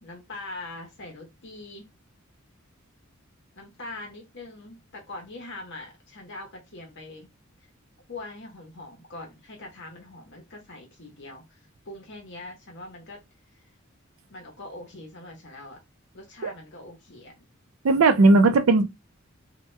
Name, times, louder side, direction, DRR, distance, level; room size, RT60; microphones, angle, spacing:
voice 1, 0.0-1.9 3.5-7.3 7.6-7.7 8.1-13.2 13.6-13.7 14.3-15.8 16.1-17.3, left 2 dB, 60° left, 0.9 m, -42 dB
voice 2, 17.8-18.8, right 3 dB, 90° right, 0.5 m, -17 dB
2.8 x 2.2 x 3.2 m
head